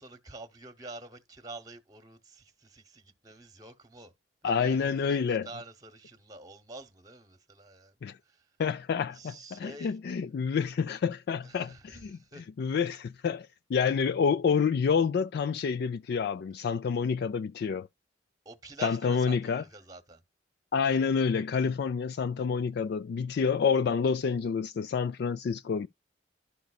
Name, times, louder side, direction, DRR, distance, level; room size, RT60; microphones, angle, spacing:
voice 1, 0.0-4.1 4.4-7.9 8.3-8.4 9.1-9.9 11.4-12.4 18.4-20.2, right 3 dB, 20° right, 1.0 m, -47 dB
voice 2, 4.4-5.5 8.0-8.2 8.6-17.9 18.8-19.6 20.7-25.9, left 6 dB, 60° left, 0.3 m, -28 dB
11.5 x 5.2 x 2.3 m
head